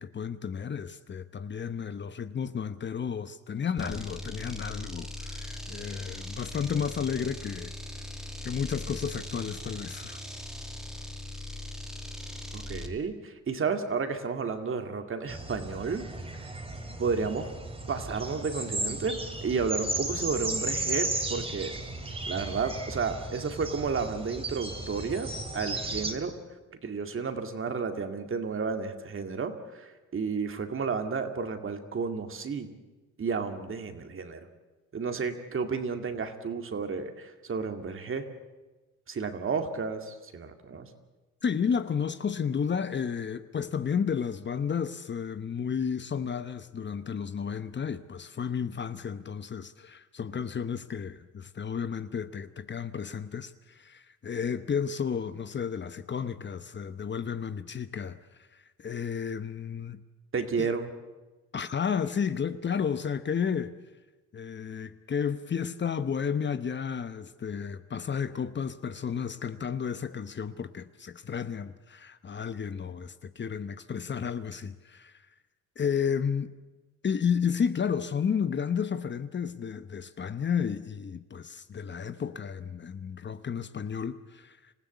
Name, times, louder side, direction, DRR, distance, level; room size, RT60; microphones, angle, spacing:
voice 1, 0.0-7.7 8.4-10.2 41.4-58.2 58.5-60.0 60.6-60.7 61.5-63.7 64.3-75.2 75.8-76.5 77.0-84.7, left 7 dB, 35° left, 1.0 m, -32 dB
sound 1, 3.8-13.0, left 1 dB, ahead, 2.1 m, -40 dB
voice 2, 12.5-16.1 17.0-17.5 17.9-21.8 22.3-26.4 26.8-32.7 33.2-34.5 34.9-38.3 39.1-40.9 60.3-60.9, right 5 dB, 45° right, 2.3 m, -32 dB
sound 2, 15.3-26.1, right 2 dB, 20° right, 3.0 m, -35 dB
26.5 x 15.5 x 8.3 m
cardioid pair, 90°, 30 cm